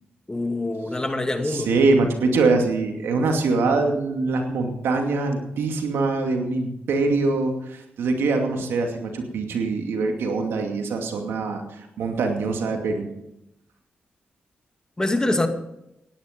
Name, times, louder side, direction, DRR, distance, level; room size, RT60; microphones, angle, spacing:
voice 1, 0.3-1.7 15.0-15.5, left 2 dB, 20° left, 6 dB, 2.2 m, -24 dB
voice 2, 1.4-13.1, right 3 dB, 85° right, 3 dB, 2.4 m, -23 dB
17.0 x 10.5 x 5.2 m, 0.83 s
cardioid pair, 60°, 4 cm